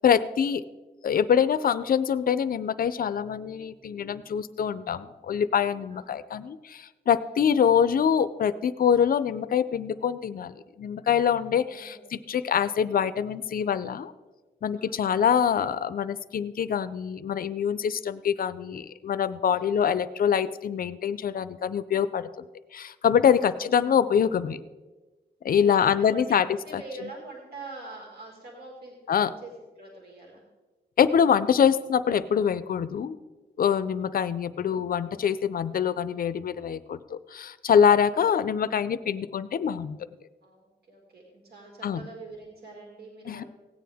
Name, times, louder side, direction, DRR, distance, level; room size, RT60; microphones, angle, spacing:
voice 1, 0.0-0.6 1.0-14.1 14.6-22.3 22.7-24.6 25.4-26.5 26.7-26.8 29.1-29.3 31.0-33.2 33.6-40.0 41.8-42.0 43.3-43.4, left 8 dB, 55° left, 15 dB, 0.5 m, -24 dB
voice 2, 5.9-6.2 7.2-7.4 11.5-12.1 14.8-15.1 19.5-19.7 23.3-23.7 25.5-26.4 26.6-30.4 33.7-34.0 40.4-43.4, right 2 dB, 65° right, -2 dB, 2.2 m, -45 dB
16.5 x 9.4 x 3.5 m, 1.2 s
wide cardioid pair, 170°, 18 cm